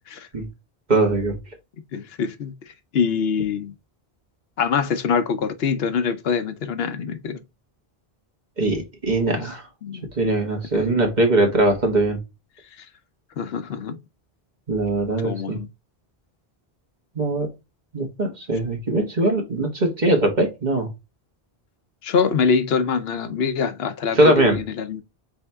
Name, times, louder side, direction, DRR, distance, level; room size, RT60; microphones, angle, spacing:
voice 1, 0.9-1.4 8.6-9.6 10.1-12.2 14.7-15.6 17.1-17.5 17.9-20.9 24.1-24.6, right 2 dB, 45° right, 1.5 m, -21 dB
voice 2, 1.9-2.5 2.9-3.7 4.6-7.4 9.3-9.4 9.8-10.1 10.7-11.0 12.8-12.9 13.4-14.0 15.2-15.7 22.0-25.0, left 6 dB, 80° left, 0.9 m, -24 dB
4.3 x 3.6 x 3.4 m
omnidirectional pair, 1.0 m